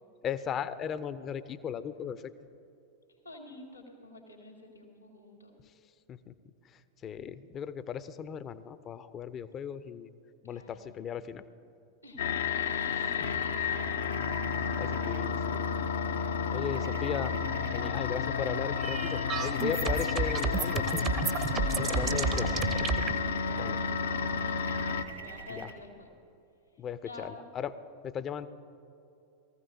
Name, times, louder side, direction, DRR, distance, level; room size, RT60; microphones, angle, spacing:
voice 1, 0.2-2.2 6.1-6.3 6.7-10.1 10.4-11.4 14.5-15.7 16.5-17.4 17.7-21.0 21.8-22.5 23.5-23.8 25.5-25.7 26.8-27.7 28.0-28.5, left 8 dB, 30° left, 14 dB, 0.6 m, -37 dB
voice 2, 3.2-5.6 10.4-10.9 12.0-12.2 12.7-14.1 16.2-16.7 17.7-17.9 21.6-22.7 23.2-24.9 25.2-26.1 27.0-27.5, left 2 dB, 90° left, 1 dB, 2.9 m, -49 dB
sound 1, 12.2-25.0, left 6 dB, 65° left, 0.7 m, -31 dB
sound 2, 12.5-25.7, right 2 dB, 85° right, 1.6 m, -45 dB
sound 3, 18.8-23.1, right 5 dB, 30° right, 0.8 m, -31 dB
22.5 x 15.0 x 2.7 m, 2.7 s
figure-of-eight pair, 90°, 0 cm